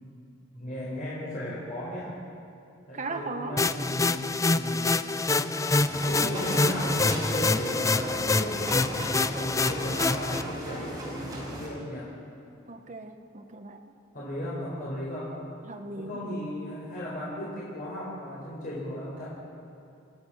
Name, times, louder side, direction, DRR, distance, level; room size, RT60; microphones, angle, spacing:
voice 1, 0.5-2.1 2.9-4.9 6.0-12.1 14.1-15.3 16.0-19.2, equal, 45° left, -7 dB, 4.6 m, -36 dB
voice 2, 2.9-3.6 12.7-13.8 15.6-16.2, right 3 dB, 35° right, 4 dB, 1.1 m, -37 dB
sound 1, 3.6-10.4, left 3 dB, 15° left, 0.4 m, -26 dB
sound 2, 5.8-11.7, right 1 dB, 20° right, 5.2 m, -37 dB
29.0 x 14.0 x 6.3 m, 2.6 s
head